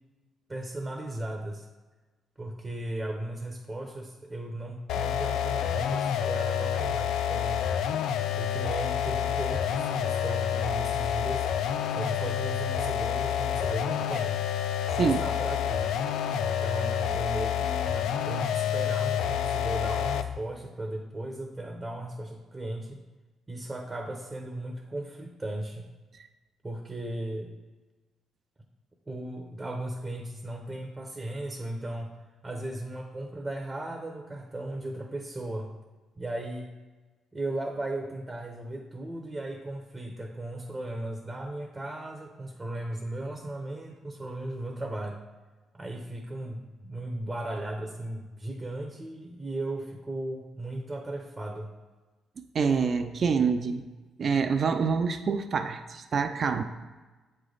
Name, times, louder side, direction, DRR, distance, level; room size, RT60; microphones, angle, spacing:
voice 1, 0.5-1.7 2.4-7.8 8.3-11.5 11.9-14.4 14.9-15.9 16.4-23.0 23.5-25.9 26.6-27.5 29.1-32.1 32.4-35.7 36.2-36.7 37.3-45.2 45.7-51.7, right 1 dB, 15° right, 3 dB, 0.7 m, -36 dB
sound 1, 4.9-20.4, left 9 dB, 80° left, 0.3 m, -28 dB
voice 2, 52.4-53.8 54.2-56.6, right 5 dB, 50° right, 7 dB, 0.4 m, -26 dB
7.8 x 3.2 x 3.9 m, 1.3 s
cardioid pair, 90°, 0 cm